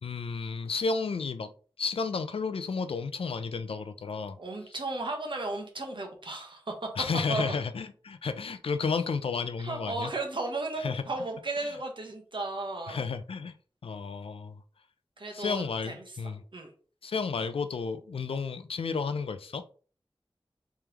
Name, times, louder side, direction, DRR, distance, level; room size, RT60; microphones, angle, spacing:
voice 1, 0.0-1.5 1.8-4.4 7.0-10.1 10.8-11.0 11.6-11.7 12.9-13.5 13.8-14.6 15.3-16.4 17.0-19.7, left 5 dB, 90° left, 0.4 m, -32 dB
voice 2, 4.4-6.7 7.3-7.6 9.6-13.0 15.2-16.0 16.5-16.7, right 2 dB, 60° right, 1.1 m, -35 dB
3.4 x 3.4 x 3.0 m
wide cardioid pair, 70°, 9 cm